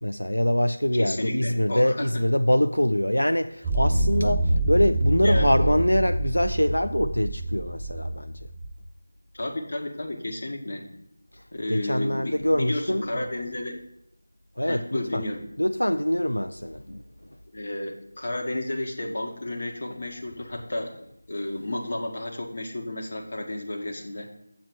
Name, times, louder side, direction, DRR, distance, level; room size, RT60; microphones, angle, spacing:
voice 1, 0.0-8.3 11.3-11.4 11.7-13.2 14.6-15.2 15.6-17.0, equal, 85° left, 0.3 m, -24 dB
voice 2, 0.9-2.1 5.2-5.8 9.3-10.9 11.5-13.8 14.6-15.4 17.5-24.3, left 1 dB, 45° left, 1.5 m, -32 dB
sound 1, 3.6-8.7, right 1 dB, ahead, 2.8 m, -25 dB
7.7 x 7.2 x 4.7 m
figure-of-eight pair, 165°, 0 cm